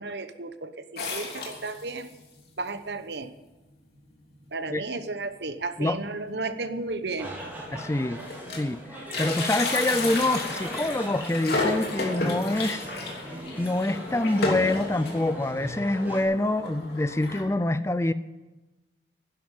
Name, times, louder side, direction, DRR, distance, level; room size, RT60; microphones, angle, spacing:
voice 1, 0.0-2.1 2.6-3.3 4.5-7.3, right 3 dB, 70° right, 10 dB, 1.0 m, -33 dB
sound 1, 1.0-2.1 2.7-2.8 3.0-3.1 3.9-4.0 4.4-4.6 5.0-5.1 6.3-6.4 7.1-7.2 7.5-8.8 9.0-17.4, left 2 dB, 60° left, 3.1 m, -32 dB
sound 2, 7.2-16.2, equal, 10° right, 3.7 m, -40 dB
voice 2, 7.7-8.2 8.5-12.8 13.6-18.1, left 2 dB, 15° left, 13 dB, 0.4 m, -26 dB
12.0 x 10.5 x 9.1 m, 1.1 s
head